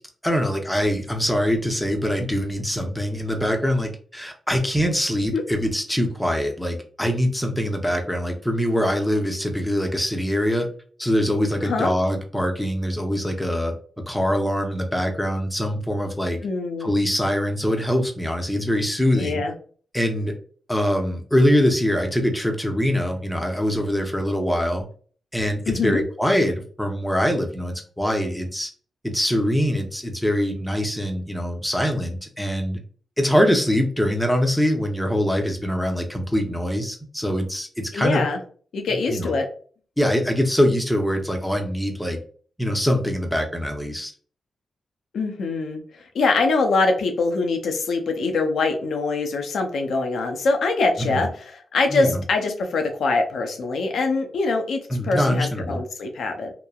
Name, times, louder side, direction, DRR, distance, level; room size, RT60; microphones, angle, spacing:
voice 1, 0.2-10.7 11.0-13.7 14.1-16.4 16.8-19.4 19.9-20.3 20.7-24.8 25.3-28.7 29.0-32.8 33.2-38.2 39.1-39.4 40.0-42.2 42.6-44.1 51.0-51.3 51.9-52.2 54.9-55.8, equal, 5° left, 3 dB, 0.7 m, -23 dB
voice 2, 16.4-16.9 19.2-19.5 25.7-26.0 37.9-38.4 38.7-39.5 45.1-45.8 46.1-56.5, left 3 dB, 80° left, 4 dB, 0.5 m, -23 dB
3.0 x 2.1 x 2.3 m, 0.44 s
cardioid pair, 65°, 0 cm